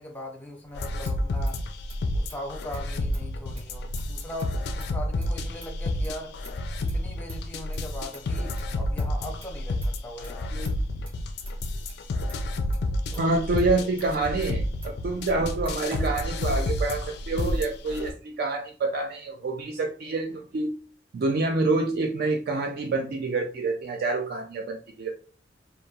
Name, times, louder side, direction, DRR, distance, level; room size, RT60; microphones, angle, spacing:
voice 1, 0.0-1.6 2.1-6.4 6.8-10.7 13.1-13.9, left 1 dB, 10° left, 0.6 m, -40 dB
sound 1, 0.7-18.1, left 1 dB, 60° left, 0.3 m, -30 dB
Motor vehicle (road), 0.8-16.9, right 1 dB, 30° right, 1.4 m, -49 dB
voice 2, 13.2-20.7 21.1-25.1, right 3 dB, 55° right, 0.3 m, -27 dB
2.9 x 2.2 x 2.3 m
head